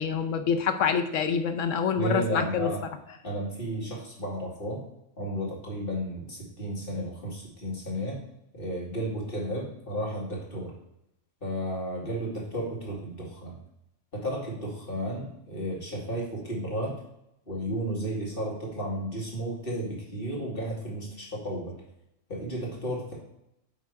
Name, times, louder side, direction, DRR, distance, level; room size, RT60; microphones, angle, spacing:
voice 1, 0.0-2.7, left 6 dB, 80° left, 8 dB, 1.1 m, -26 dB
voice 2, 1.9-2.8 3.2-4.8 5.2-8.2 8.5-10.7 11.4-13.6 14.1-17.0 17.5-21.8 22.3-23.1, equal, 45° left, -3 dB, 2.5 m, -33 dB
9.5 x 3.6 x 4.7 m, 0.82 s
omnidirectional pair, 1.3 m